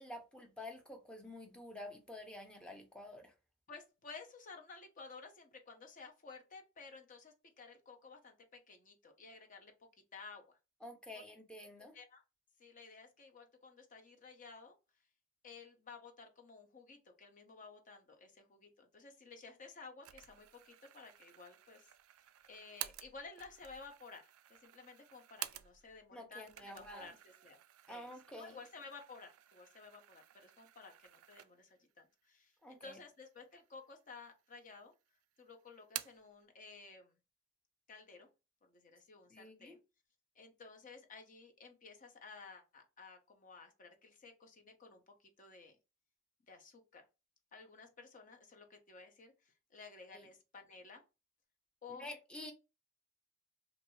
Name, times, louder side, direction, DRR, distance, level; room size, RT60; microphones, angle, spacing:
voice 1, 0.0-3.3 10.8-11.9 26.1-27.1 27.9-28.5 32.6-33.0 39.3-39.8 50.1-50.2 52.0-52.5, left 1 dB, 5° left, 3 dB, 0.6 m, -49 dB
voice 2, 3.7-10.6 11.1-11.2 11.8-12.2 12.6-14.7 15.4-21.9 22.5-27.6 27.9-34.9 35.4-37.1 37.9-38.3 38.6-39.8 40.3-45.8 46.5-47.1 47.5-51.0 51.8-52.1, left 4 dB, 40° left, 3 dB, 0.7 m, -54 dB
sound 1, 20.0-26.0 26.4-31.8 32.2-32.3 33.2-33.8 34.2-34.9 35.2-36.3, right 14 dB, 90° right, 0.3 m, -51 dB
2.6 x 2.5 x 3.0 m, 0.28 s
head